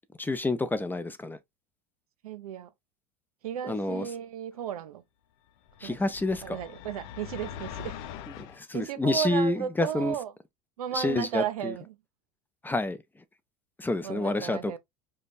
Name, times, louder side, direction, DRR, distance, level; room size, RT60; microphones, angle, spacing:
voice 1, 0.2-1.4 3.6-4.1 5.8-6.6 8.5-10.1 10.9-11.7 12.6-13.0 13.8-14.8, left 2 dB, 10° left, 0.6 m, -28 dB
voice 2, 2.2-2.7 3.4-5.0 5.8-6.0 6.4-8.0 8.7-10.3 10.8-12.0 14.0-14.8, right 10 dB, 90° right, 0.6 m, -34 dB
sound 1, 5.7-8.6, left 9 dB, 65° left, 0.6 m, -42 dB
5.1 x 2.2 x 2.6 m
hypercardioid pair, 95°, 18 cm